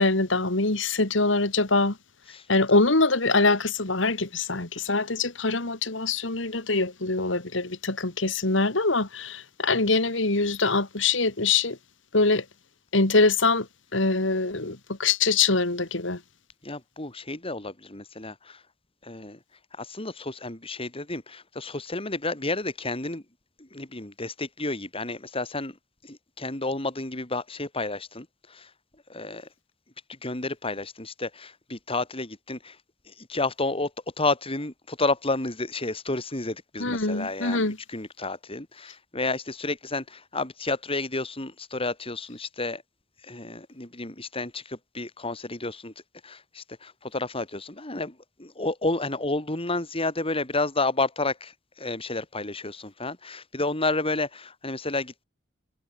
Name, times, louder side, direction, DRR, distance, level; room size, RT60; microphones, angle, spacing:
voice 1, 0.0-2.0 2.5-11.8 12.1-12.4 12.9-13.7 13.9-16.2 36.8-37.8, left 3 dB, 70° left, 2.6 m, -24 dB
voice 2, 16.6-18.6 19.0-19.4 19.8-23.2 23.6-25.8 26.0-28.7 29.1-29.5 30.1-32.8 33.1-33.9 34.2-42.8 43.2-45.9 46.2-55.2, left 2 dB, 30° left, 3.9 m, -31 dB
head